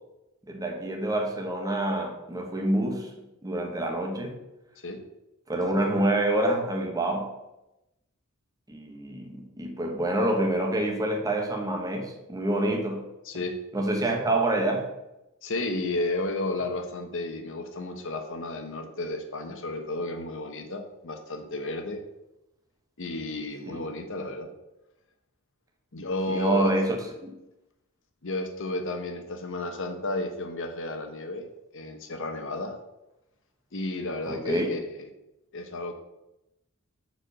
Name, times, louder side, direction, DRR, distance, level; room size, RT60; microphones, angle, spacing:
voice 1, 0.5-3.1 3.4-4.4 5.5-7.3 8.7-13.1 13.7-14.9 23.7-23.8 26.3-27.3 34.3-34.7, right 1 dB, 15° right, 2 dB, 1.3 m, -27 dB
voice 2, 13.2-13.6 15.4-22.0 23.0-24.5 25.9-26.7 28.2-31.4 31.7-32.8 33.7-35.1 35.5-35.9, left 2 dB, 60° left, 6 dB, 1.1 m, -32 dB
6.8 x 4.8 x 6.7 m, 0.94 s
head